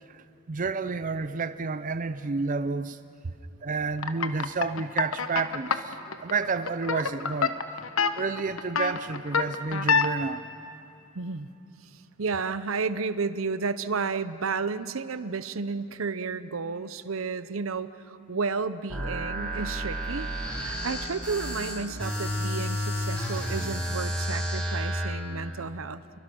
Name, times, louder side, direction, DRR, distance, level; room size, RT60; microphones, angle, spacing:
voice 1, 0.5-3.0 3.6-7.6 7.9-10.4, right 4 dB, 40° right, 11 dB, 0.5 m, -30 dB
sound 1, 4.0-10.1, left 5 dB, 90° left, 1.0 m, -26 dB
voice 2, 11.1-11.5 12.2-20.3 20.6-26.2, right 4 dB, 75° right, 13 dB, 0.8 m, -32 dB
sound 2, 18.9-25.1, equal, 5° left, 5.4 m, -31 dB
28.5 x 23.5 x 6.2 m, 2.7 s
head